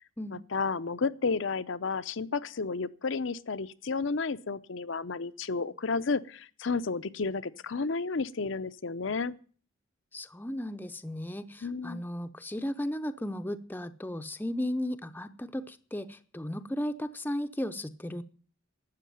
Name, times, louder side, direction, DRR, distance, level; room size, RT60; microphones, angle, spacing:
voice 1, 0.3-9.4 11.6-12.0, left 4 dB, 65° left, 0.7 m, -32 dB
voice 2, 10.1-18.2, left 1 dB, 10° left, 0.6 m, -35 dB
12.5 x 8.3 x 10.0 m
head